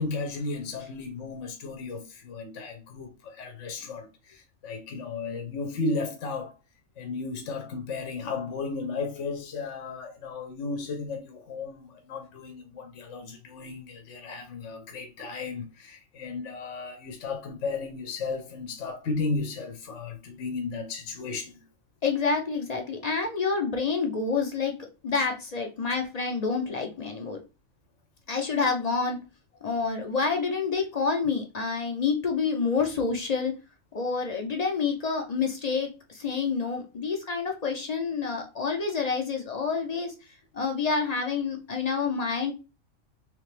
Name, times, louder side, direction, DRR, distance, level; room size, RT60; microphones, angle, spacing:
voice 1, 0.0-6.6 7.0-21.5, left 3 dB, 65° left, 1.0 m, -34 dB
voice 2, 22.0-24.7 25.0-27.4 28.3-29.2 29.6-33.5 33.9-40.1 40.5-42.5, left 5 dB, 45° left, 0.5 m, -28 dB
3.3 x 3.2 x 3.2 m
omnidirectional pair, 1.4 m